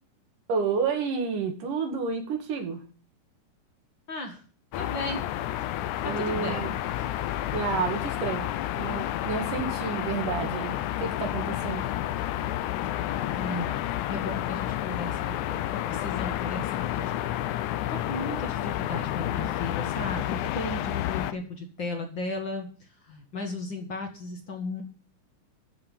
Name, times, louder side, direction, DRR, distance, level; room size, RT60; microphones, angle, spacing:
voice 1, 0.5-2.8 6.0-6.8 7.5-8.5 8.7-11.8, right 5 dB, 85° right, 4 dB, 3.7 m, -30 dB
voice 2, 4.1-4.4 4.8-5.3 6.0-6.7 13.4-13.8 14.1-15.6 15.8-17.1 17.5-24.8, left 2 dB, 45° left, 3 dB, 2.0 m, -35 dB
sound 1, 4.7-21.3, left 13 dB, 80° left, 2.1 m, -30 dB
13.5 x 5.6 x 7.0 m, 0.41 s
omnidirectional pair, 3.6 m